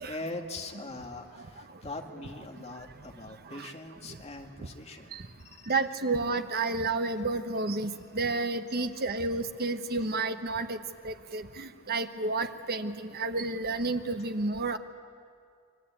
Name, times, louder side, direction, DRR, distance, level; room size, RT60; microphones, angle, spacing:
voice 1, 0.0-5.1 5.4-5.7 8.1-8.2, left 2 dB, 30° left, 3 dB, 2.0 m, -41 dB
voice 2, 5.7-10.8 11.0-14.8, right 3 dB, 45° right, 8 dB, 1.2 m, -31 dB
28.5 x 22.5 x 8.8 m, 2.2 s
head